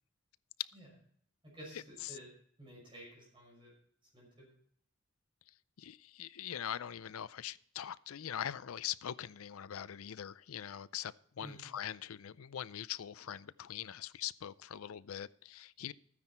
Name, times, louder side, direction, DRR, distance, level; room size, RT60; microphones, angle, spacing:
voice 1, 1.4-2.3 2.6-3.7 4.1-4.5 11.4-11.7, right 1 dB, 25° right, 6.3 m, -52 dB
voice 2, 5.8-15.9, left 10 dB, 90° left, 0.5 m, -42 dB
14.0 x 9.6 x 4.4 m
head